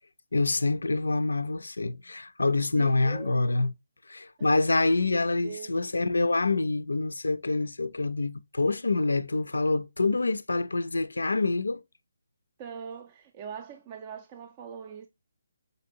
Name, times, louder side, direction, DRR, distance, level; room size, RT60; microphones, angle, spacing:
voice 1, 0.3-3.7 4.1-11.8, left 3 dB, 80° left, 0.3 m, -26 dB
voice 2, 2.8-3.3 4.4-4.5 5.4-5.8 12.6-15.1, right 7 dB, 25° right, 0.4 m, -42 dB
5.1 x 2.6 x 2.6 m
figure-of-eight pair, 150°, 0 cm